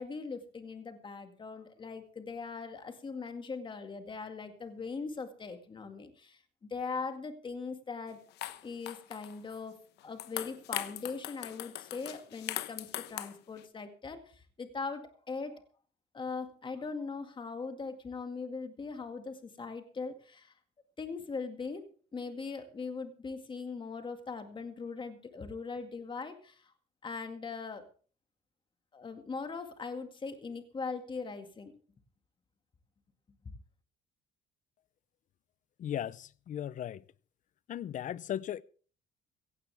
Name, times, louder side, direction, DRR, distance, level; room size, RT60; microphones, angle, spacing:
voice 1, 0.0-8.2 8.6-9.8 10.0-15.6 16.1-20.5 21.0-21.8 22.1-26.7 27.0-27.8 28.9-31.7, left 4 dB, 30° left, 2.1 m, -40 dB
sound 1, 8.1-8.2 8.4-9.6 10.0-13.6, left 14 dB, 80° left, 1.0 m, -40 dB
voice 2, 35.8-37.0 37.7-38.6, left 10 dB, 50° left, 0.6 m, -37 dB
16.5 x 15.5 x 3.5 m
cardioid pair, 110°, 17 cm